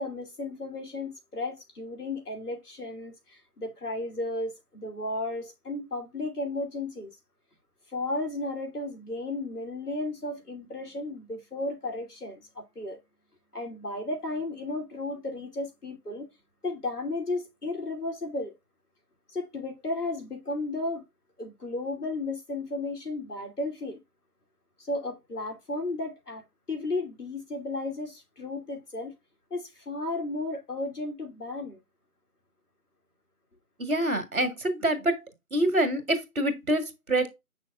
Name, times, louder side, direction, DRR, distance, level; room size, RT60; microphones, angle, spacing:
voice 1, 0.0-7.1 7.9-13.0 13.5-16.3 16.6-18.5 19.3-21.0 21.4-24.0 24.8-29.1 29.5-31.8, left 2 dB, 80° left, 2.9 m, -34 dB
voice 2, 33.8-35.2 35.5-37.3, right 1 dB, 65° right, 1.8 m, -26 dB
6.9 x 6.0 x 2.3 m
figure-of-eight pair, 180°, 46 cm